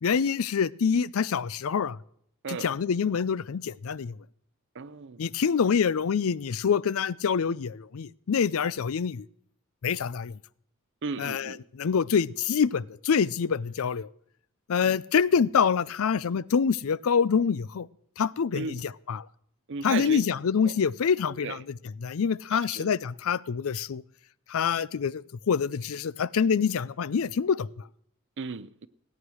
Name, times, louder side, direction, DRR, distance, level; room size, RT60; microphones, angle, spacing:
voice 1, 0.0-2.0 2.5-4.2 5.2-9.2 9.8-10.4 11.2-14.1 14.7-17.9 18.2-19.2 19.8-21.6 22.0-24.0 24.5-27.7, left 6 dB, 70° left, 0.5 m, -26 dB
voice 2, 4.7-5.2 11.0-11.6 18.5-18.8 19.7-20.2 20.6-20.7 21.4-21.6 22.5-22.9 28.4-28.9, right 4 dB, 55° right, 0.6 m, -35 dB
17.5 x 9.7 x 6.2 m
head